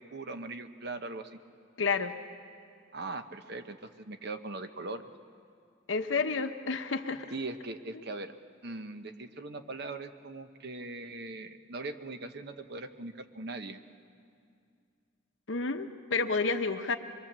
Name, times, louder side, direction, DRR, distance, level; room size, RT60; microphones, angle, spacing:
voice 1, 0.0-1.4 2.9-5.0 7.3-8.3 8.6-13.8, right 2 dB, 55° right, 8 dB, 1.0 m, -40 dB
voice 2, 1.8-2.1 5.9-7.3 15.5-17.0, left 4 dB, 75° left, 7 dB, 1.0 m, -30 dB
24.5 x 22.5 x 7.4 m, 2.3 s
head